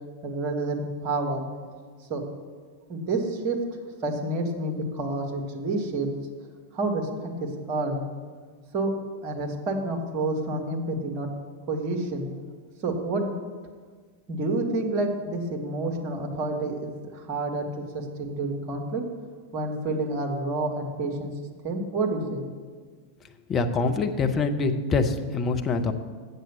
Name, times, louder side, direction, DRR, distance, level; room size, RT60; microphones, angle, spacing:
voice 1, 0.2-1.4 2.1-2.2 2.9-3.6 4.0-6.1 6.7-8.0 8.7-8.9 9.2-11.3 11.7-12.3 12.8-13.3 14.3-19.0 19.5-21.3 21.6-22.4, right 2 dB, 35° right, 2 dB, 1.6 m, -29 dB
voice 2, 23.5-25.9, left 4 dB, 25° left, 6 dB, 0.8 m, -25 dB
7.9 x 7.3 x 6.9 m, 1.5 s
figure-of-eight pair, 90°, 0 cm